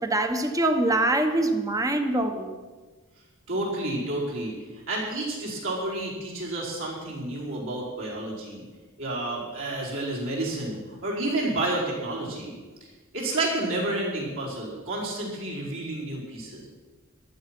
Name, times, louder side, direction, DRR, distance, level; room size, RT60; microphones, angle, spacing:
voice 1, 0.0-2.5, right 2 dB, 15° right, 7 dB, 1.1 m, -24 dB
voice 2, 3.5-8.6 9.0-12.5 13.1-16.7, right 2 dB, 65° right, -4 dB, 5.0 m, -30 dB
14.5 x 12.0 x 6.1 m, 1.3 s
head